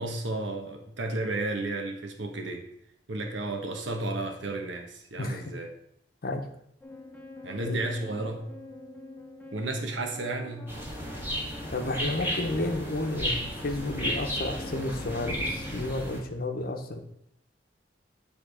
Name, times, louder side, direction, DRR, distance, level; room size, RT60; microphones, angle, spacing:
voice 1, 0.0-2.7 3.1-5.7 7.4-8.5 9.5-10.8, right 2 dB, 85° right, 4 dB, 1.1 m, -32 dB
sound 1, 6.8-15.9, left 2 dB, 10° left, 0.8 m, -46 dB
sound 2, 10.7-16.2, equal, 15° right, 1.6 m, -33 dB
voice 2, 11.7-17.0, left 2 dB, 55° left, 5 dB, 0.8 m, -31 dB
9.1 x 3.5 x 4.8 m, 0.75 s
head